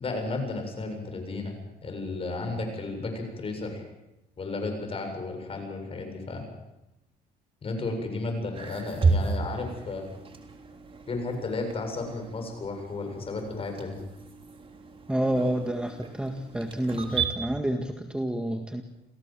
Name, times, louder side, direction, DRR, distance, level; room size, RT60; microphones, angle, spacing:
voice 1, 0.0-1.6 1.8-3.8 4.4-6.5 7.6-10.0 11.1-14.0, left 3 dB, 35° left, 4 dB, 7.4 m, -33 dB
sound 1, 8.5-17.3, right 4 dB, 30° right, 3.5 m, -33 dB
voice 2, 15.1-18.8, right 1 dB, 5° right, 5 dB, 1.8 m, -29 dB
28.0 x 16.5 x 7.6 m, 0.91 s
cardioid pair, 110°, 17 cm